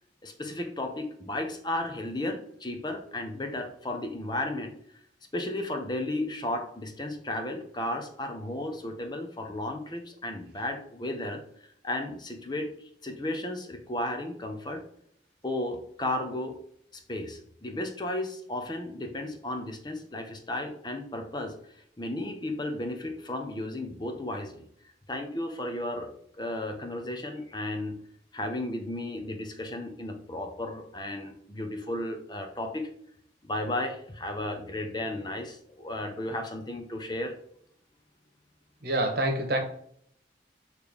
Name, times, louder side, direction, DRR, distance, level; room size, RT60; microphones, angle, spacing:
voice 1, 0.2-4.7 5.3-11.4 11.8-14.8 15.4-16.6 16.9-24.7 25.1-26.1 26.4-28.0 28.3-32.9 33.4-37.3, left 1 dB, 25° left, 5 dB, 0.8 m, -34 dB
voice 2, 38.8-39.6, right 1 dB, 55° right, 4 dB, 1.4 m, -26 dB
6.8 x 3.3 x 5.2 m, 0.66 s
head